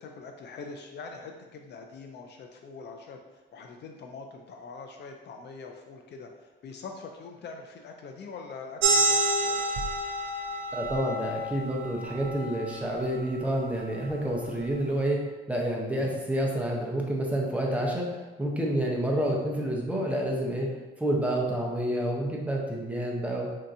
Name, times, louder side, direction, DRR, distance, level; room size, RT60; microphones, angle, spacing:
voice 1, 0.0-3.2 3.5-9.8, left 4 dB, 60° left, 3 dB, 0.4 m, -43 dB
sound 1, 8.8-14.0, right 2 dB, 85° right, 0.5 m, -29 dB
voice 2, 10.7-15.2 15.5-20.7 21.0-23.5, right 1 dB, 5° right, -2 dB, 0.7 m, -29 dB
4.4 x 2.7 x 2.6 m, 1.2 s
cardioid pair, 90°, 20 cm